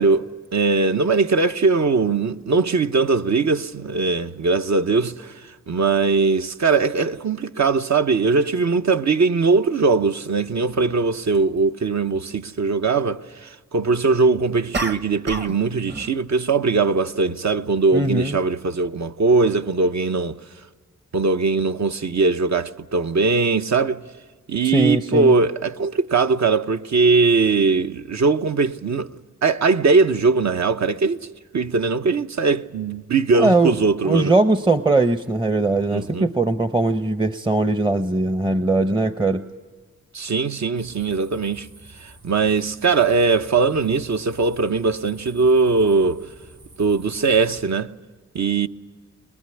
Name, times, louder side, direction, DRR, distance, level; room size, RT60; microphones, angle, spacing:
voice 1, 0.0-5.4 5.7-20.4 21.1-24.0 24.5-29.1 29.4-31.2 31.5-34.3 35.9-36.3 40.1-41.7 42.0-46.2 46.8-47.9 48.3-48.7, right 4 dB, 60° right, 1.0 m, -20 dB
sound 1, 14.7-15.6 15.9-16.2, right 2 dB, 35° right, 1.2 m, -29 dB
voice 2, 17.9-18.4 24.6-25.3 33.3-33.7 34.0-39.4, right 2 dB, 15° right, 0.8 m, -20 dB
sound 2, 40.7-47.6, right 1 dB, 75° right, 5.9 m, -48 dB
22.5 x 21.5 x 9.9 m
wide cardioid pair, 75°, 32 cm